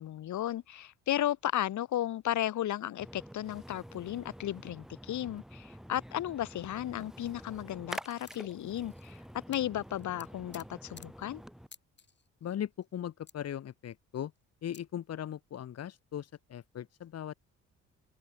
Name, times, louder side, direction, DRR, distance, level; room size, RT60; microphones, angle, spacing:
voice 1, 0.0-9.2 9.5-11.4, left 12 dB, 70° left, 2.3 m, -34 dB
Splash splatter, 3.0-11.7, equal, ahead, 5.4 m, -48 dB
sound 1, 8.0-8.1 8.3-9.2 9.5-9.6 9.9-10.6 11.0-11.1 11.7-12.6 12.8-12.9 13.3-13.4 14.4-14.5 14.7-14.8, left 5 dB, 35° left, 7.3 m, -54 dB
voice 2, 12.4-14.3 14.6-17.3, left 10 dB, 55° left, 1.4 m, -39 dB
open air
cardioid pair, 90°, 30 cm